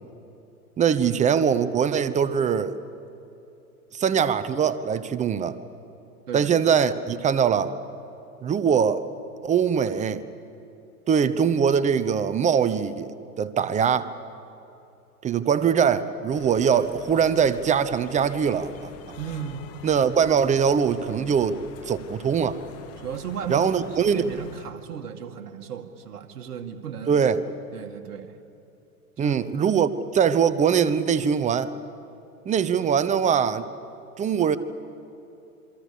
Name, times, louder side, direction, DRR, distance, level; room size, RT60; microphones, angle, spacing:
voice 1, 0.8-2.8 3.9-5.6 6.3-7.7 8.4-9.1 9.4-10.3 11.1-13.1 13.4-14.1 15.2-19.2 19.8-21.6 21.9-22.6 23.5-24.3 27.1-27.4 29.2-31.7 32.5-33.7 34.2-34.6, right 7 dB, 15° right, 14 dB, 0.8 m, -22 dB
sound 1, 16.3-24.7, left 6 dB, 30° left, 2.0 m, -45 dB
voice 2, 19.2-19.7 23.0-27.2 27.7-28.4 29.2-29.4, right 8 dB, 80° right, 5 dB, 2.2 m, -35 dB
27.5 x 23.5 x 7.0 m, 2.9 s
hypercardioid pair, 120°, 46 cm